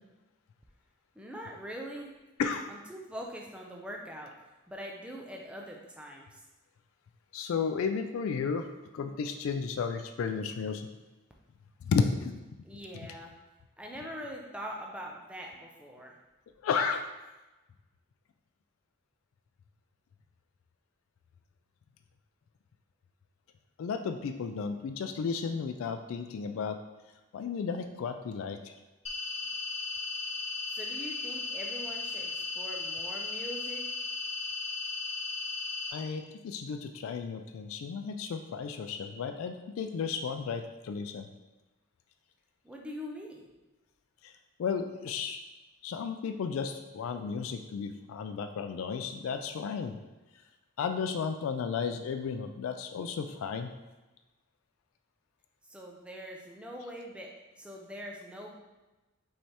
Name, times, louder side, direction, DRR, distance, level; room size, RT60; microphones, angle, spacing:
voice 1, 1.2-2.1 2.7-4.3 4.7-6.4 12.6-13.3 13.8-16.2 30.7-33.8 42.6-43.5 55.6-58.6, equal, 5° right, -1 dB, 0.4 m, -43 dB
voice 2, 2.4-2.7 7.3-8.7 8.9-10.9 11.9-12.4 16.6-17.1 23.8-26.8 27.3-28.7 35.9-41.3 44.2-44.3 44.6-45.4 45.8-49.9 50.8-53.7, left 5 dB, 80° left, 6 dB, 0.3 m, -33 dB
sound 1, 29.1-35.9, left 4 dB, 30° left, 0.7 m, -36 dB
5.4 x 3.3 x 2.9 m, 1.1 s
head